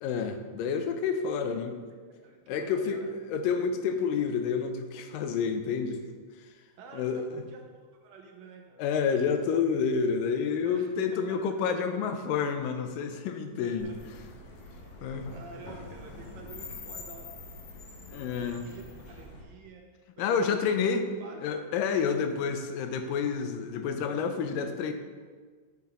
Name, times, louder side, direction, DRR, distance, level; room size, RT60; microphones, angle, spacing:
voice 1, 0.0-1.8 2.5-3.0 3.3-6.0 6.9-7.4 8.8-14.0 15.0-15.3 18.1-18.6 20.2-21.1 21.4-24.9, left 6 dB, 85° left, 7 dB, 2.3 m, -29 dB
voice 2, 1.5-3.1 6.8-7.6 8.0-9.3 10.6-11.6 13.3-14.2 14.8-14.9 15.3-17.3 18.1-19.8 20.2-21.6, right 4 dB, 75° right, 2 dB, 1.7 m, -49 dB
sound 1, 13.8-19.4, left 2 dB, 65° left, 1.5 m, -45 dB
9.8 x 6.0 x 3.6 m, 1.6 s
omnidirectional pair, 3.9 m